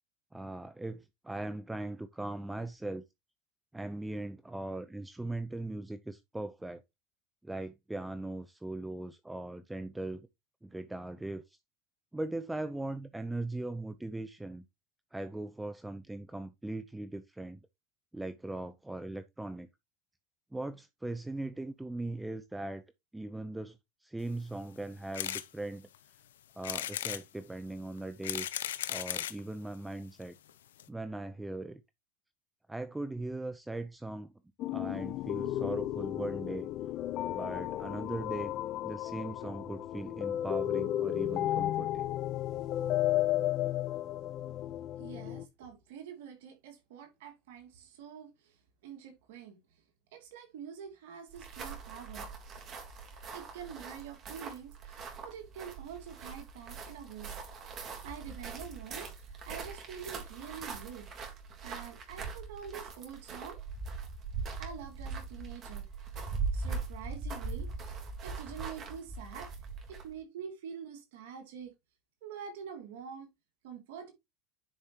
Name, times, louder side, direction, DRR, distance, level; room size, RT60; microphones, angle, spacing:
voice 1, 0.3-3.0 3.7-6.8 7.4-10.3 10.6-11.6 12.1-14.6 15.1-17.6 18.1-19.7 20.5-22.8 23.1-23.8 24.0-25.9 26.6-28.5 28.9-30.4 30.9-31.8 32.7-34.3 34.7-36.7 37.3-38.5 38.8-42.1, right 2 dB, 10° right, 0.7 m, -39 dB
sound 1, 25.1-25.5 25.9-26.0 26.6-27.2 28.0-29.4 30.2-30.3 30.5-30.6 30.8-30.9, left 11 dB, 90° left, 0.7 m, -36 dB
sound 2, 34.6-45.4, left 13 dB, 55° left, 0.7 m, -33 dB
voice 2, 45.0-48.6 48.8-49.6 50.1-52.3 53.3-57.6 58.0-61.1 61.6-63.6 64.6-65.9 66.1-66.2 66.5-69.5 69.9-71.7 72.2-73.3 73.6-74.1, right 7 dB, 75° right, 2.7 m, -46 dB
sound 3, 51.3-70.2, right 4 dB, 40° right, 3.6 m, -41 dB
10.0 x 5.3 x 3.0 m
hypercardioid pair, 95°, 0 cm